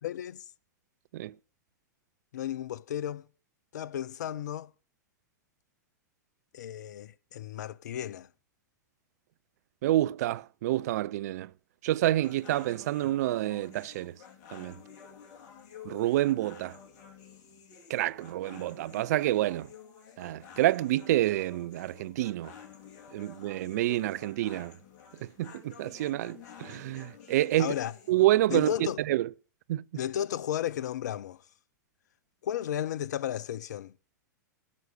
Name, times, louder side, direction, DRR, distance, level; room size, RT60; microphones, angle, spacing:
voice 1, 0.0-0.4 2.3-3.3 3.7-4.7 6.5-8.3 27.6-28.0 28.5-29.0 29.9-31.4 32.4-33.9, left 10 dB, 70° left, 0.7 m, -34 dB
voice 2, 9.8-11.5 11.8-14.1 14.5-14.7 15.8-16.8 17.9-19.7 20.2-22.5 23.1-24.7 25.4-27.7 28.1-28.7 29.1-29.3 29.7-29.8, right 15 dB, 60° right, 0.5 m, -28 dB
sound 1, 12.2-28.2, left 8 dB, 45° left, 2.9 m, -51 dB
16.0 x 6.4 x 8.3 m
hypercardioid pair, 100°, 10 cm